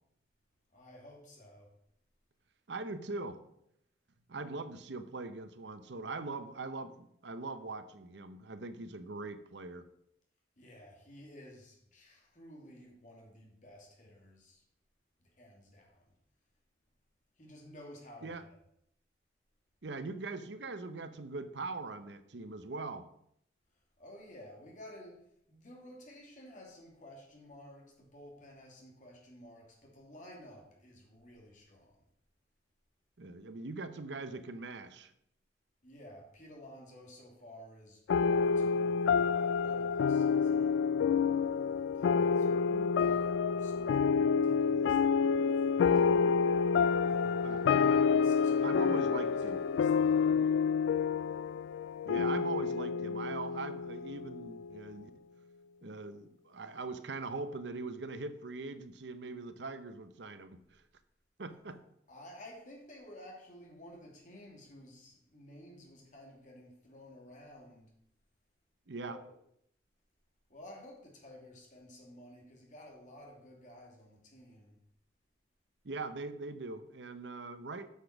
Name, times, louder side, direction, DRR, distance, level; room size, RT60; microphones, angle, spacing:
voice 1, 0.7-1.7 10.6-14.6 15.3-16.1 17.4-18.6 24.0-32.0 35.8-40.9 41.7-42.5 43.0-46.4 47.1-47.5 48.0-50.5 62.1-67.9 69.0-69.3 70.5-74.8, left 1 dB, 45° left, -1 dB, 2.7 m, -53 dB
voice 2, 2.7-3.4 4.3-9.9 18.2-18.4 19.8-23.1 33.2-35.1 42.7-42.9 47.1-48.0 48.6-49.6 52.1-55.1 55.8-60.8 61.4-61.8 68.9-69.2 75.8-77.9, right 3 dB, 75° right, 11 dB, 0.8 m, -41 dB
sound 1, 38.1-54.9, left 6 dB, 90° left, 0.3 m, -28 dB
sound 2, 45.7-52.8, left 2 dB, 15° right, 2.2 m, -59 dB
8.3 x 6.2 x 5.9 m, 0.73 s
head